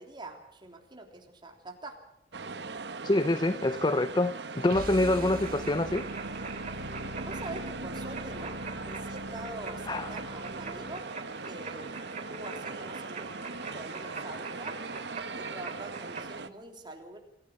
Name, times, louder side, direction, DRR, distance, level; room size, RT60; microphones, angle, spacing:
voice 1, 0.0-2.0 7.2-8.5 8.8-11.0 11.4-12.0 12.3-14.7 15.3-17.2, right 2 dB, 25° right, 3 dB, 3.3 m, -44 dB
sound 1, 2.3-16.5, right 4 dB, 75° right, 1.1 m, -40 dB
voice 2, 3.0-6.0 9.9-10.1, left 2 dB, 25° left, 12 dB, 0.7 m, -26 dB
sound 2, 4.7-11.1, right 1 dB, 55° right, 1.8 m, -42 dB
sound 3, 5.2-16.3, right 4 dB, 40° right, 2.8 m, -44 dB
26.0 x 15.5 x 6.5 m, 0.88 s
head